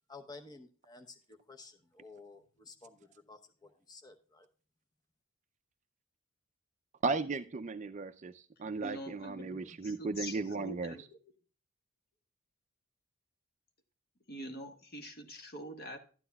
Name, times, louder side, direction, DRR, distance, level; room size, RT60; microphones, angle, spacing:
voice 1, 0.1-4.5, left 3 dB, 20° left, 4 dB, 0.8 m, -53 dB
voice 2, 7.0-11.0, right 3 dB, 35° right, 9 dB, 0.4 m, -36 dB
voice 3, 8.8-11.2 14.3-16.0, equal, 45° left, 5 dB, 1.4 m, -45 dB
12.0 x 9.8 x 2.3 m, 0.39 s
head